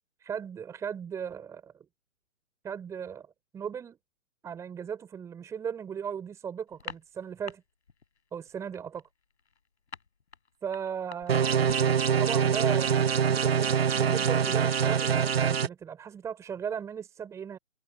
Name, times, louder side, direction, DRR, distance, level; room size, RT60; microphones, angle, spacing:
voice 1, 0.2-1.9 2.6-3.3 3.5-4.0 4.4-7.6 8.3-9.0 10.6-11.7 12.2-17.6, right 7 dB, 5° right, 3.9 m, -37 dB
sound 1, 6.7-7.6 7.9-8.2 8.5-12.0, left 5 dB, 55° left, 6.2 m, -44 dB
sound 2, 11.3-15.7, right 7 dB, 50° right, 0.7 m, -24 dB
figure-of-eight pair, 145°, 39 cm